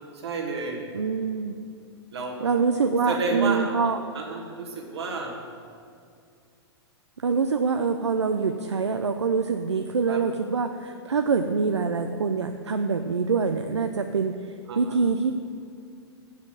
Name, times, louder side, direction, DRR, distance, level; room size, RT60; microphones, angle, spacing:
voice 1, 0.1-0.8 2.1-2.4 3.1-5.3 10.1-10.2 14.7-15.0, right 3 dB, 70° right, 0 dB, 1.7 m, -31 dB
voice 2, 0.9-1.5 2.4-4.0 7.2-15.3, right 5 dB, 90° right, 7 dB, 0.4 m, -25 dB
7.0 x 5.7 x 6.6 m, 2.3 s
figure-of-eight pair, 105°, 14 cm